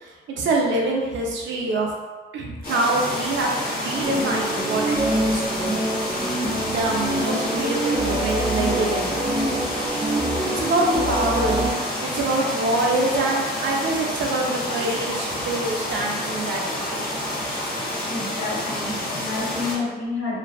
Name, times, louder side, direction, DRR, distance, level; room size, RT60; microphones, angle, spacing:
voice 1, 0.0-1.9 2.3-5.8 6.7-9.2 10.5-17.1, right 2 dB, 65° right, -1 dB, 0.6 m, -25 dB
sound 1, 2.6-19.8, left 1 dB, 50° left, 0.8 m, -29 dB
sound 2, 4.0-11.7, right 1 dB, 20° right, 0.5 m, -26 dB
voice 2, 18.1-20.4, left 3 dB, 90° left, -5 dB, 0.8 m, -29 dB
2.6 x 2.3 x 2.3 m, 1.3 s
cardioid pair, 90°, 20 cm